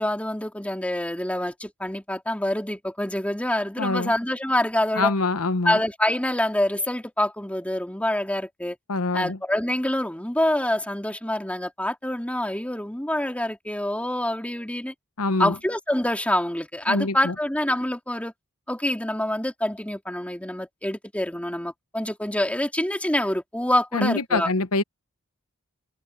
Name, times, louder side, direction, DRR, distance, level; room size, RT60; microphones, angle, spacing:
voice 1, 0.0-5.1 5.6-8.8 9.1-14.9 15.4-18.3 18.7-24.5, left 1 dB, 5° left, 3.1 m, -26 dB
voice 2, 3.8-4.1 4.9-5.8 8.9-9.4 15.2-15.5 16.9-17.3 23.9-24.8, left 3 dB, 70° left, 1.1 m, -24 dB
open air
head